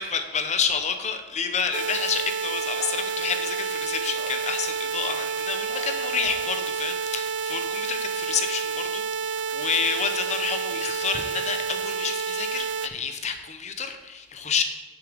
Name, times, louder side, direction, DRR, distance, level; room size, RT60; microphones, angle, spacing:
voice 1, 0.0-14.6, left 6 dB, 40° left, 7 dB, 0.8 m, -29 dB
sound 1, 1.7-12.9, right 6 dB, 90° right, 0.4 m, -29 dB
Bark, 2.7-3.0 4.1-4.4 5.7-6.5, left 2 dB, 60° left, 1.5 m, -42 dB
9.1 x 7.5 x 3.5 m, 1.3 s
head